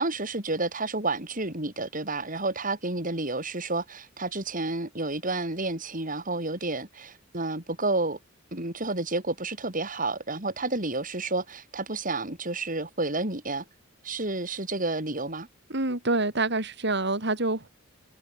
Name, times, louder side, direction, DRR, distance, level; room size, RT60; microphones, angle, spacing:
voice 1, 0.0-8.2 8.5-13.6 14.0-15.5, right 2 dB, 40° right, 6.7 m, -30 dB
voice 2, 15.7-17.7, right 2 dB, 60° right, 4.6 m, -26 dB
head